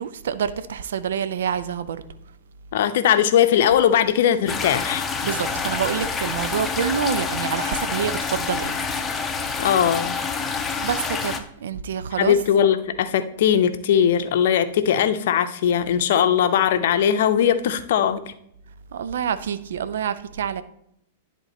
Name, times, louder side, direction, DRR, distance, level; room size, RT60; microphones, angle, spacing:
voice 1, 0.0-2.0 5.2-8.8 10.8-12.4 18.9-20.6, right 8 dB, 65° right, 0.5 m, -27 dB
voice 2, 2.7-5.1 9.6-10.2 12.2-18.2, left 9 dB, 60° left, 0.6 m, -19 dB
sound 1, 4.5-11.4, left 5 dB, 15° left, 0.7 m, -27 dB
10.5 x 3.8 x 4.1 m
figure-of-eight pair, 100°, 0 cm